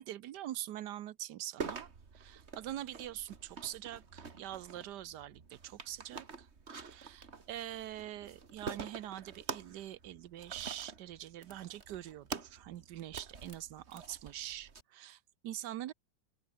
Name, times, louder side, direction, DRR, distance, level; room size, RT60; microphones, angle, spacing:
voice 1, 0.0-15.9, right 12 dB, 70° right, 1.3 m, -44 dB
sound 1, 1.6-14.8, right 5 dB, 35° right, 2.0 m, -47 dB
open air
omnidirectional pair, 2.0 m